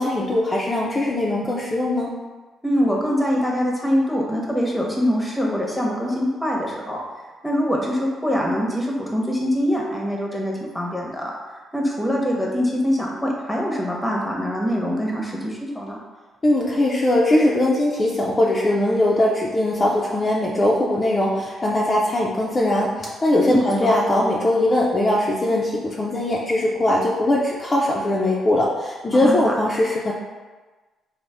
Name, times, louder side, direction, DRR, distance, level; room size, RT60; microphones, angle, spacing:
voice 1, 0.0-2.1 16.4-30.1, left 1 dB, 30° left, -4 dB, 0.4 m, -20 dB
voice 2, 2.6-7.0 7.4-11.3 11.7-16.0 23.3-23.6 29.2-29.5, equal, 5° left, -2 dB, 0.8 m, -23 dB
4.0 x 2.0 x 3.3 m, 1.3 s
cardioid pair, 90°, 0 cm